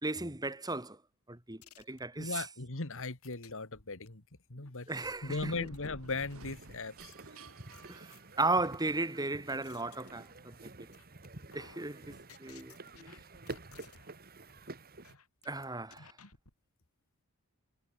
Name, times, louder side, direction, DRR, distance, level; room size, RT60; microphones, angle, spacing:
voice 1, 0.0-1.0 1.3-2.5 4.9-5.5 7.9-10.6 11.5-12.7 15.5-16.1, right 2 dB, 20° right, 2.4 m, -35 dB
sound 1, 1.6-2.4 3.2-4.1 4.6-6.5 7.1-7.2 7.7-8.7 9.2-10.6 10.9-11.3 11.5-14.2 14.5-14.6 15.0-15.5 15.9-16.5, left 5 dB, 85° left, 4.1 m, -58 dB
voice 2, 2.2-4.2 4.5-4.9 5.2-7.1, left 3 dB, 65° left, 2.3 m, -38 dB
sound 2, 4.9-8.9, right 2 dB, 75° right, 4.7 m, -54 dB
sound 3, 6.4-15.2, right 2 dB, 45° right, 2.5 m, -50 dB
head